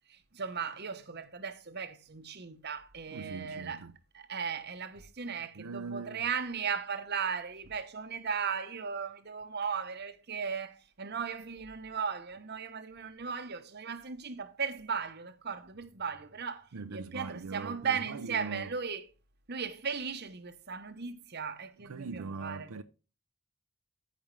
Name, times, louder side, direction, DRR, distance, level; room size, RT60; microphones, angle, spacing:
voice 1, 0.1-3.9 4.1-19.1 19.5-22.7, right 6 dB, 50° right, 1.0 m, -37 dB
voice 2, 3.1-3.9 5.6-6.2 16.7-18.7 21.8-22.8, right 4 dB, 85° right, 0.6 m, -41 dB
14.0 x 5.1 x 3.3 m
head